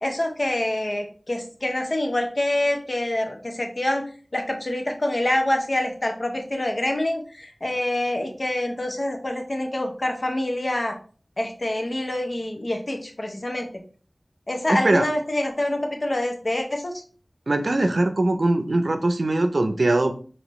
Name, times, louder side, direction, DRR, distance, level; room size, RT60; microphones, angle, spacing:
voice 1, 0.0-4.1 4.3-11.0 11.4-13.7 14.5-16.9, left 1 dB, 50° left, 3 dB, 0.9 m, -26 dB
voice 2, 14.7-15.1 17.5-20.1, right 2 dB, 75° right, 7 dB, 0.6 m, -21 dB
5.1 x 2.8 x 3.1 m, 0.41 s
wide cardioid pair, 55°, 0 cm